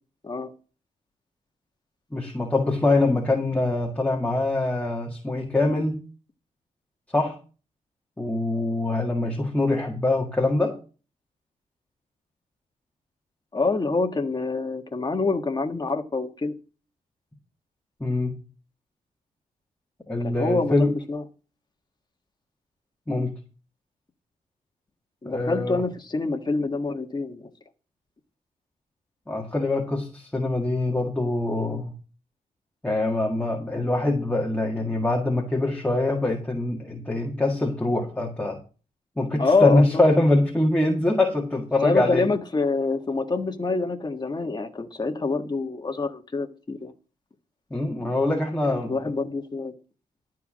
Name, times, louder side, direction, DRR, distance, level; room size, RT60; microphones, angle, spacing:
voice 1, 2.1-6.0 7.1-7.4 8.2-10.8 18.0-18.4 20.1-20.9 23.1-23.3 25.3-25.8 29.3-31.9 32.8-38.6 39.2-42.3 47.7-49.3, left 2 dB, 10° left, -1 dB, 1.8 m, -24 dB
voice 2, 13.5-16.5 20.2-21.2 25.2-27.5 39.4-40.0 41.8-46.9 48.7-49.7, left 3 dB, 30° left, 4 dB, 1.5 m, -26 dB
12.5 x 4.7 x 7.4 m, 0.36 s
wide cardioid pair, 105°, 15 cm